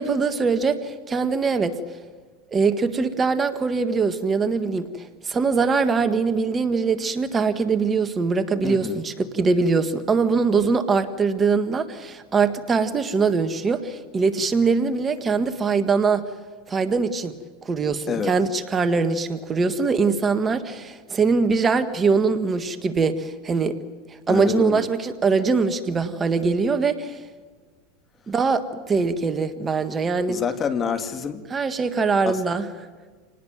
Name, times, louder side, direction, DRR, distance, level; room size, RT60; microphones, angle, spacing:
voice 1, 0.0-1.8 2.5-16.2 16.7-17.3 17.6-23.8 24.3-27.2 28.3-30.4 31.5-32.7, right 4 dB, 25° right, 10 dB, 1.7 m, -22 dB
voice 2, 8.6-9.0 18.1-18.3 24.3-24.9 30.3-31.5 32.2-32.4, left 6 dB, 30° left, 9 dB, 2.1 m, -27 dB
28.0 x 19.5 x 9.3 m, 1.4 s
hypercardioid pair, 110°, 0 cm